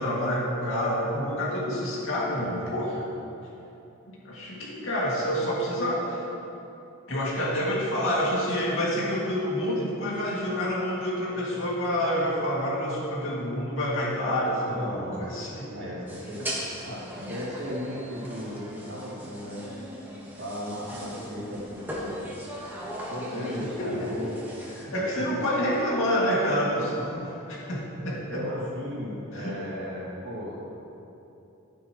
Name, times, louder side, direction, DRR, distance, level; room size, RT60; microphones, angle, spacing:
voice 1, 0.0-3.0 4.2-6.3 7.1-15.7 21.0-21.1 23.3-23.5 23.8-24.3 24.8-26.9 27.7-28.4 29.3-29.6, equal, 65° left, -5 dB, 2.4 m, -28 dB
voice 2, 2.3-2.7 7.4-7.6 14.7-15.2 15.7-19.7 20.4-22.2 23.1-24.7 24.9-25.0 25.3-25.4 26.7-27.3 28.3-30.8, equal, 55° right, -6 dB, 2.4 m, -36 dB
sound 1, 16.1-24.8, equal, 10° right, 1.5 m, -39 dB
12.0 x 9.5 x 3.1 m, 2.9 s
head